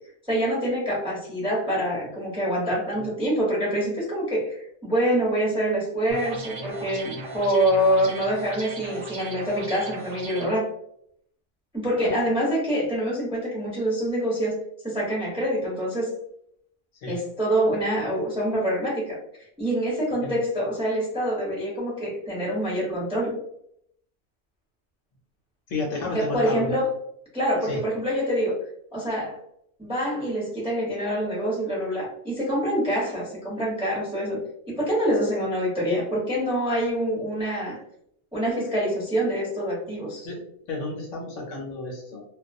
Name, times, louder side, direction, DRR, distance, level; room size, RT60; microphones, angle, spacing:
voice 1, 0.3-10.7 11.7-14.6 14.8-16.1 17.1-19.2 19.6-23.4 26.0-26.9 27.3-28.6 28.9-29.4 29.8-34.4 34.7-37.8 38.3-40.3, equal, 5° right, -6 dB, 0.7 m, -25 dB
sound 1, 6.1-10.5, right 3 dB, 65° right, 0.5 m, -38 dB
voice 2, 25.7-26.7 27.6-27.8 40.2-40.4 40.7-42.2, left 3 dB, 65° left, -1 dB, 0.9 m, -31 dB
2.3 x 2.2 x 2.5 m, 0.71 s
omnidirectional pair, 1.5 m